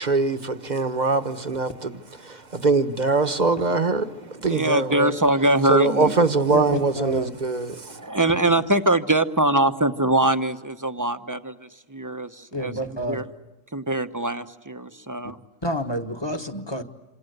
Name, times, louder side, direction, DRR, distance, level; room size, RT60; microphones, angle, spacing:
voice 1, 0.0-5.1 5.7-8.1, right 3 dB, 35° right, 1.3 m, -23 dB
voice 2, 4.4-6.2 7.8-13.3 13.7-15.4, right 1 dB, 15° right, 0.9 m, -23 dB
voice 3, 6.5-7.3 12.5-13.2 15.6-16.8, equal, 20° left, 1.4 m, -28 dB
27.5 x 27.0 x 8.0 m
omnidirectional pair, 1.3 m